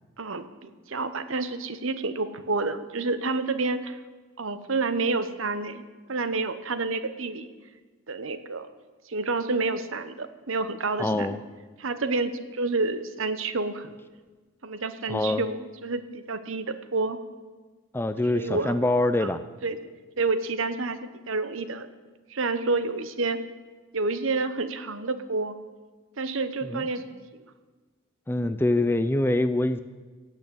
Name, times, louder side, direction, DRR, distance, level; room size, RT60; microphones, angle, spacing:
voice 1, 0.2-4.0 4.4-5.8 6.1-7.5 8.1-8.7 9.1-11.4 11.8-13.9 14.6-17.2 18.3-18.8 19.2-19.3 19.6-19.8 20.2-21.9 22.3-23.4 23.9-25.6 26.2-27.0, right 3 dB, 65° right, 11 dB, 0.9 m, -29 dB
voice 2, 11.0-11.4 15.1-15.4 17.9-19.4 26.7-26.8 28.3-29.8, left 2 dB, 10° left, 11 dB, 0.4 m, -24 dB
17.0 x 6.2 x 8.6 m, 1.4 s
head